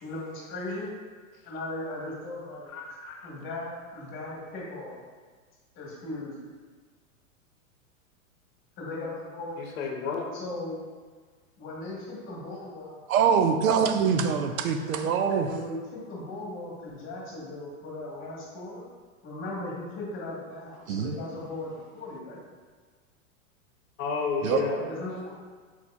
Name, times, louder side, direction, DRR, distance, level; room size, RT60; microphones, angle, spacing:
voice 1, 0.0-1.0 1.4-2.7 3.2-5.0 5.7-6.4 8.8-9.6 10.3-10.8 11.6-13.0 14.8-18.8 19.2-22.4 24.7-25.4, left 2 dB, 30° left, -3 dB, 1.2 m, -38 dB
voice 2, 2.7-3.3 9.8-10.3 24.0-24.8, left 5 dB, 80° left, 2 dB, 0.8 m, -30 dB
voice 3, 13.1-15.5 20.9-21.2 24.4-24.6, right 7 dB, 85° right, 7 dB, 0.6 m, -24 dB
4.3 x 4.2 x 2.3 m, 1.5 s
hypercardioid pair, 130°, 41 cm